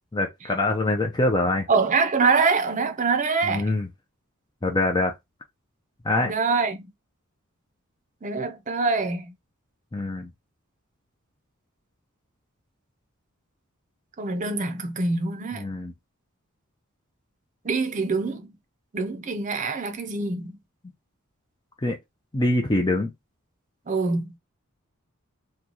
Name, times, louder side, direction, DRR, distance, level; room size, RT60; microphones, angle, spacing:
voice 1, 0.1-1.7 3.5-3.9 4.6-5.1 6.0-6.3 9.9-10.3 15.6-15.9 21.8-22.0 22.3-23.1, left 2 dB, 20° left, 0.5 m, -24 dB
voice 2, 1.7-3.7 6.2-6.9 8.2-9.3 14.2-15.7 17.6-18.5 18.9-20.6 23.9-24.3, right 4 dB, 35° right, 0.6 m, -25 dB
3.0 x 2.3 x 3.8 m
head